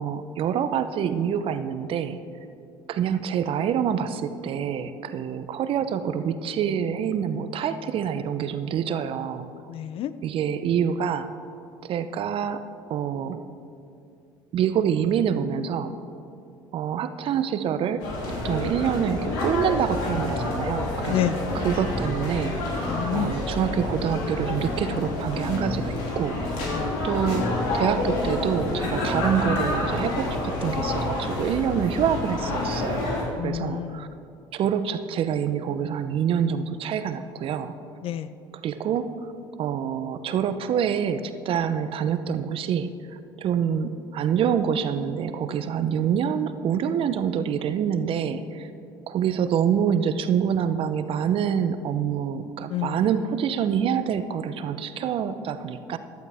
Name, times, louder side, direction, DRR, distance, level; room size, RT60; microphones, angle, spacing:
voice 1, 0.0-2.2 2.9-9.5 10.2-11.3 11.8-12.6 12.9-13.4 14.5-15.9 16.7-18.0 18.4-21.3 21.6-22.5 23.1-26.4 27.0-27.5 27.7-33.1 33.4-34.1 34.5-37.7 38.6-39.1 39.6-42.9 43.4-48.7 49.1-56.0, right 8 dB, 55° right, 11 dB, 0.7 m, -26 dB
voice 2, 9.7-10.1 21.1-21.5 22.9-23.4 26.6-26.9 33.4-34.1 38.0-38.3 52.7-53.3, left 11 dB, 55° left, 14 dB, 0.6 m, -29 dB
sound 1, 18.0-33.2, left 2 dB, 80° left, 2.7 m, -28 dB
15.0 x 11.5 x 3.5 m, 2.5 s
hypercardioid pair, 70°, 11 cm